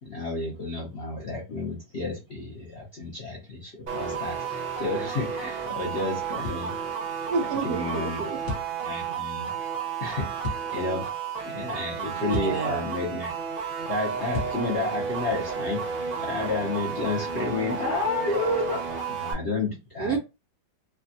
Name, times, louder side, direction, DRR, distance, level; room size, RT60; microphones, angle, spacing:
voice 1, 0.0-6.7 7.6-8.2 8.8-9.5 10.0-11.1 11.4-13.3 13.8-15.8 16.2-18.8 19.1-20.2, left 3 dB, 70° left, 0.6 m, -31 dB
sound 1, 3.9-19.3, right 6 dB, 60° right, 0.5 m, -32 dB
sound 2, 6.4-6.7 8.5-8.7 10.4-10.7 12.3-12.6 14.3-14.6, left 2 dB, 45° left, 1.0 m, -32 dB
voice 2, 7.3-8.4 12.2-12.8 20.0-20.2, right 5 dB, 90° right, 0.8 m, -29 dB
3.3 x 2.3 x 2.6 m
omnidirectional pair, 2.2 m